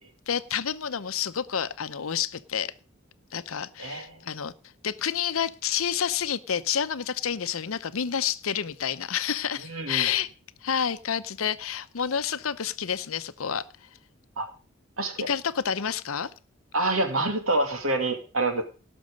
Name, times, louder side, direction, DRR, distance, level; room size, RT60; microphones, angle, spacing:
voice 1, 0.3-2.7 3.3-4.5 4.8-10.3 10.6-13.9 15.3-16.3, left 8 dB, 80° left, 13 dB, 0.7 m, -29 dB
voice 2, 3.8-4.2 9.7-10.1 14.4-14.5 15.0-15.3 16.7-18.6, right 2 dB, 75° right, 5 dB, 2.3 m, -27 dB
17.5 x 6.2 x 5.2 m, 0.36 s
head